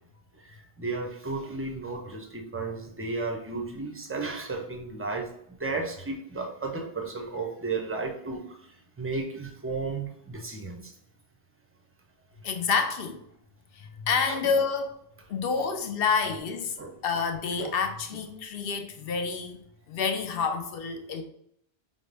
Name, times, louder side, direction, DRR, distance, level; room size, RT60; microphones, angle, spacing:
voice 1, 0.4-8.6 9.0-10.9 14.3-14.4 15.6-15.7 16.8-16.9 17.6-17.7, right 3 dB, 15° right, 2 dB, 0.4 m, -34 dB
voice 2, 12.4-13.2 13.8-14.9 15.3-16.8 17.0-19.6 19.9-21.2, left 5 dB, 65° left, 6 dB, 0.8 m, -28 dB
5.2 x 2.1 x 3.2 m, 0.73 s
omnidirectional pair, 1.1 m